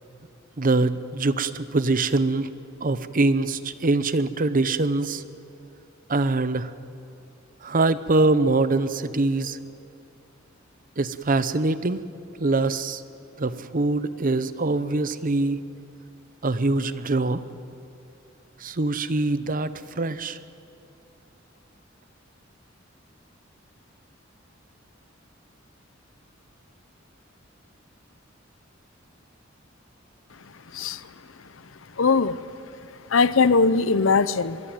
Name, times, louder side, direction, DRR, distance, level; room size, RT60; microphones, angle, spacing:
voice 1, 0.6-2.5 2.8-5.2 6.1-6.7 7.6-9.6 11.0-12.0 12.4-13.0 13.4-15.6 16.4-17.4 18.6-19.7 20.0-20.4, right 2 dB, 45° right, 14 dB, 0.8 m, -23 dB
voice 2, 32.0-32.4 33.1-34.6, left 4 dB, 75° left, 16 dB, 0.7 m, -20 dB
23.5 x 22.0 x 9.0 m, 2.6 s
head